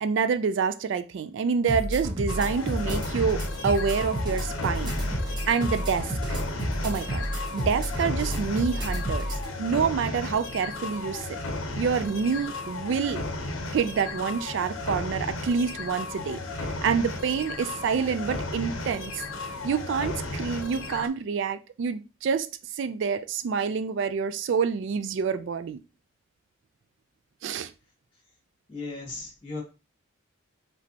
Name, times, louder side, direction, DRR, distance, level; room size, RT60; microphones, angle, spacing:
voice 1, 0.0-4.9 5.5-6.4 6.8-11.4 11.8-13.2 13.7-19.2 19.6-22.5 22.8-25.8 27.4-27.7, right 6 dB, 65° right, 0.3 m, -27 dB
sound 1, 1.7-9.5, equal, 20° right, 0.9 m, -30 dB
sound 2, 2.3-21.1, left 2 dB, 85° left, 0.7 m, -34 dB
voice 2, 28.7-29.6, left 3 dB, 25° left, 1.9 m, -36 dB
5.1 x 3.2 x 2.8 m
head